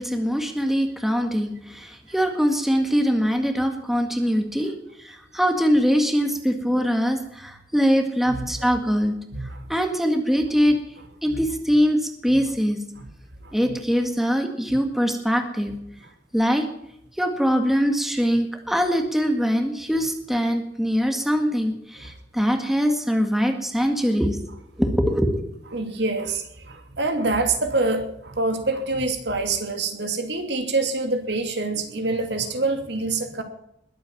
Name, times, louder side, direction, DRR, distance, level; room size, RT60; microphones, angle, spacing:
voice 1, 0.0-4.7 5.0-9.2 9.7-10.8 11.2-12.8 13.5-15.7 16.3-16.7 17.2-24.4 24.8-25.4, equal, ahead, 4 dB, 1.9 m, -22 dB
voice 2, 8.3-8.7 9.3-9.7 11.3-11.4 12.3-12.4 13.0-13.1 13.4-13.7 25.7-33.4, right 3 dB, 65° right, 5 dB, 2.8 m, -26 dB
21.5 x 8.6 x 7.3 m, 0.77 s
head